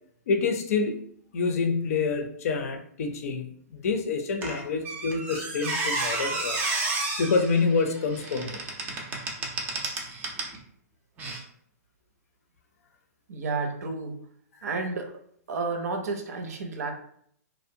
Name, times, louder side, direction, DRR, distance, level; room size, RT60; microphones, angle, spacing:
voice 1, 0.3-1.0 1.3-6.6 7.2-8.6, left 4 dB, 60° left, 5 dB, 0.5 m, -27 dB
Squeak, 4.4-10.6 11.2-11.4, right 3 dB, 20° right, 0.4 m, -31 dB
voice 2, 13.3-14.2 14.6-15.2 15.5-16.9, right 3 dB, 70° right, 4 dB, 0.6 m, -31 dB
2.6 x 2.1 x 2.6 m, 0.65 s
hypercardioid pair, 145°, 9 cm